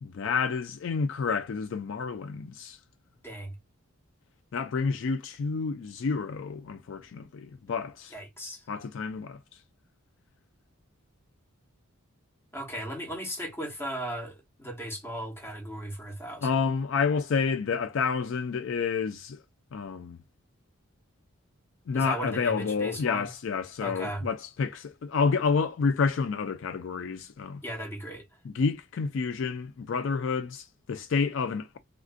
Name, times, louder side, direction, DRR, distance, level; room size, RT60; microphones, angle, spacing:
voice 1, 0.0-2.8 4.5-8.1 8.7-9.4 16.4-19.4 19.7-20.2 21.9-27.6 28.4-31.8, left 5 dB, 60° left, 0.3 m, -29 dB
voice 2, 3.2-3.5 8.1-8.6 12.5-16.5 21.9-23.3 23.8-24.3 27.6-28.3, right 1 dB, 10° left, 0.9 m, -36 dB
3.5 x 2.5 x 2.4 m
head